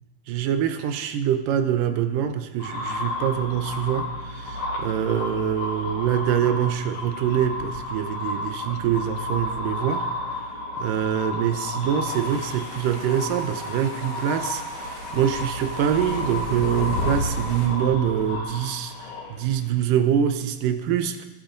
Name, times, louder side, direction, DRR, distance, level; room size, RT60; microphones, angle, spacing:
voice 1, 0.3-10.1 10.8-21.3, right 9 dB, 75° right, 9 dB, 2.4 m, -25 dB
sound 1, 2.6-19.7, left 1 dB, 55° left, 3.0 m, -31 dB
sound 2, 12.0-17.7, left 1 dB, 40° left, 3.6 m, -42 dB
23.0 x 9.3 x 3.9 m, 1.1 s
omnidirectional pair, 4.0 m